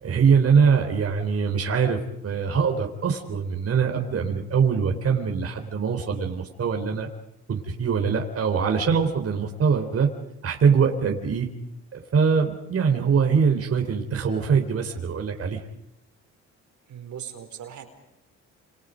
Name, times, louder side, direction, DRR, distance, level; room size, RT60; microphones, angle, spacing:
voice 1, 0.0-7.1 7.5-10.1 10.4-11.5 11.9-15.6, right 6 dB, 50° right, 3 dB, 3.8 m, -23 dB
voice 2, 16.9-17.8, right 9 dB, 70° right, 6 dB, 4.6 m, -39 dB
29.0 x 27.5 x 5.2 m, 0.86 s
cardioid pair, 90°, 30 cm